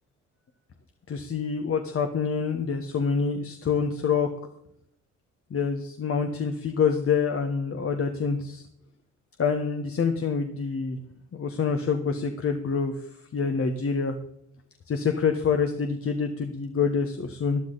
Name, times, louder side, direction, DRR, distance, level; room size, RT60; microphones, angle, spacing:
voice 1, 1.1-4.3 5.5-8.6 9.4-11.0 11.3-12.9 13.3-14.2 14.9-17.6, left 5 dB, 45° left, 6 dB, 1.4 m, -26 dB
13.5 x 12.0 x 4.1 m, 0.72 s
cardioid pair, 90°, 30 cm